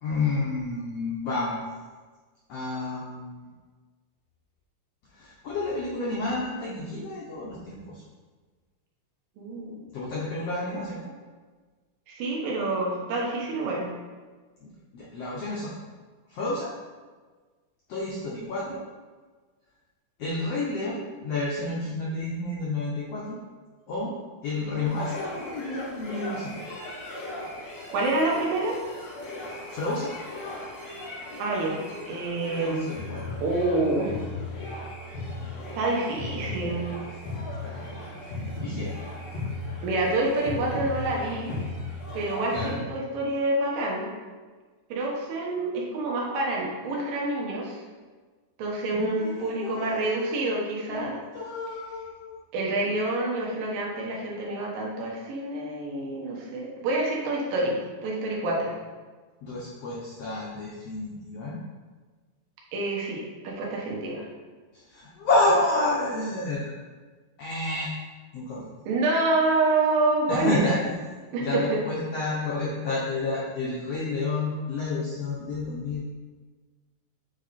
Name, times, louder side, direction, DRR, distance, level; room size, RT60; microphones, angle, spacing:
voice 1, 0.0-1.6 2.5-3.5 5.1-8.0 9.9-11.0 14.6-15.7 16.3-16.7 17.9-18.8 20.2-23.4 23.9-24.1 24.4-26.7 29.7-30.1 32.6-33.4 37.6-38.1 38.5-39.0 42.5-42.8 48.9-50.0 50.9-52.4 59.4-61.6 64.7-66.8 67.4-67.9 68.3-68.7 70.3-71.0 71.4-76.1, left 2 dB, 75° left, -5 dB, 1.4 m, -30 dB
voice 2, 9.4-9.7 12.1-13.9 24.6-25.0 27.9-28.8 31.4-33.0 33.4-34.1 35.8-36.9 39.8-41.6 42.1-44.1 44.9-47.8 48.6-51.2 52.5-58.8 62.7-64.3 68.9-70.9 71.3-71.6, right 2 dB, 80° right, -3 dB, 2.8 m, -27 dB
sound 1, 24.8-42.8, left 2 dB, 60° left, 2.4 m, -37 dB
7.8 x 3.5 x 4.2 m, 1.4 s
omnidirectional pair, 3.9 m